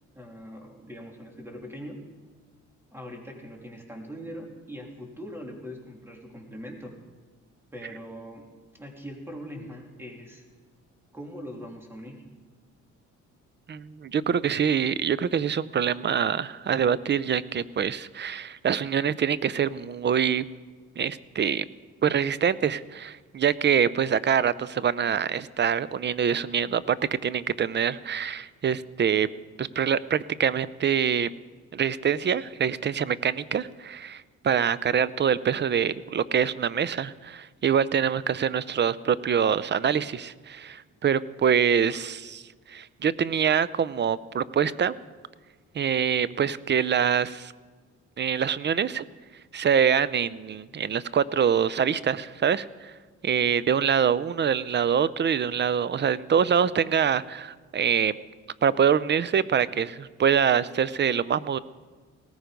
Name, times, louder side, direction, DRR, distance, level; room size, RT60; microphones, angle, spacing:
voice 1, 0.1-2.0 2.9-6.9 7.7-10.4 11.1-12.2 53.4-53.7, equal, 10° right, 1 dB, 3.3 m, -41 dB
voice 2, 13.7-20.4 21.0-21.6 22.0-27.0 27.2-29.3 29.6-31.3 31.7-42.4 42.7-44.9 45.7-47.5 48.2-49.1 49.5-52.9 53.2-58.2 58.6-61.6, right 7 dB, 35° right, 18 dB, 0.6 m, -25 dB
18.5 x 14.0 x 5.2 m, 1.4 s
cardioid pair, 90°, 30 cm